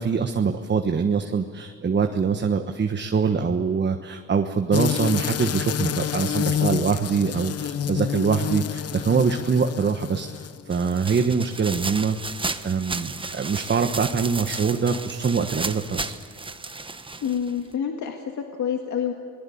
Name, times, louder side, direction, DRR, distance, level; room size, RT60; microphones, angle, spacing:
voice 1, 0.0-16.2, right 5 dB, 35° right, 6 dB, 1.4 m, -24 dB
sound 1, 4.7-10.7, left 9 dB, 55° left, 0.9 m, -28 dB
sound 2, 10.7-17.7, right 3 dB, 15° right, 1.1 m, -33 dB
voice 2, 17.2-19.1, left 8 dB, 70° left, 3 dB, 1.9 m, -27 dB
25.5 x 20.0 x 8.7 m, 2.4 s
cardioid pair, 90°, 30 cm